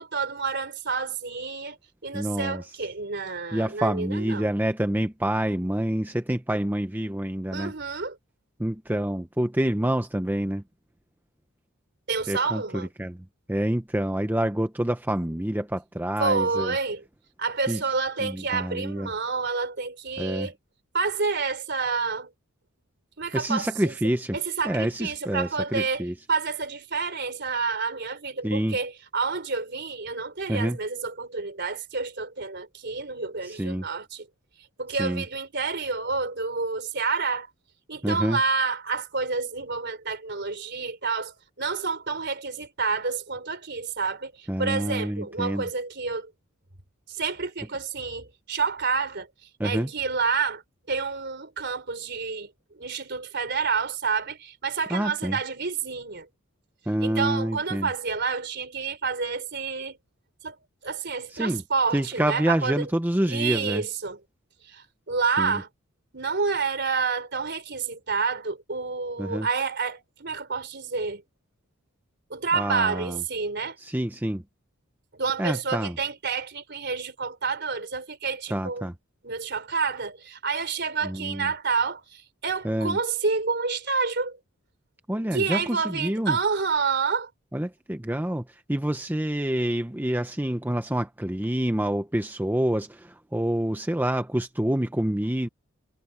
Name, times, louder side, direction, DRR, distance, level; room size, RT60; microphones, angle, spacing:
voice 1, 0.0-1.8 2.0-4.5 7.5-8.2 12.1-12.9 16.2-17.0 17.4-20.5 20.9-22.3 23.2-24.0 24.3-34.3 34.8-37.5 37.9-46.3 47.1-49.3 49.6-50.6 50.9-56.3 57.0-60.0 60.4-60.6 60.8-62.9 63.3-64.2 64.7-65.7 66.1-71.2 72.3-73.8 75.1-78.9 79.2-84.4 85.3-87.3, right 4 dB, 50° right, 3.7 m, -29 dB
voice 2, 2.1-2.6 3.5-7.7 8.6-10.6 12.3-13.2 13.5-16.7 17.7-17.8 18.2-19.1 20.2-20.5 23.3-24.4 24.6-26.1 28.4-28.8 30.5-30.8 33.4-33.8 35.0-35.2 38.0-38.4 44.5-45.7 49.6-49.9 54.9-55.4 56.9-57.9 61.3-61.6 61.9-63.8 65.4-65.6 69.2-69.5 72.5-73.2 73.8-74.4 75.4-76.0 78.5-78.9 81.0-81.5 82.6-83.0 85.1-86.4 87.5-95.5, right 1 dB, 10° right, 0.7 m, -27 dB
head